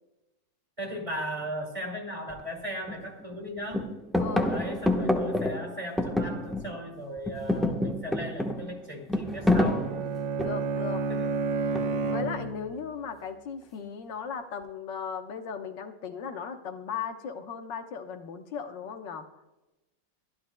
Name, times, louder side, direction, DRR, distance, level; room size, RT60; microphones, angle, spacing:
voice 1, 0.8-3.8 4.5-9.9 11.1-11.4, equal, 15° right, 1 dB, 2.2 m, -37 dB
sound 1, 2.3-2.4 2.9-3.4 3.7-6.9 7.2-10.8 11.7-12.2, left 1 dB, ahead, 0.6 m, -28 dB
voice 2, 4.2-4.5 10.4-11.1 12.1-19.3, left 6 dB, 75° left, 6 dB, 1.7 m, -37 dB
Bowed string instrument, 9.2-12.9, right 4 dB, 85° right, 1.8 m, -31 dB
24.0 x 12.0 x 2.2 m, 1.0 s
omnidirectional pair, 2.0 m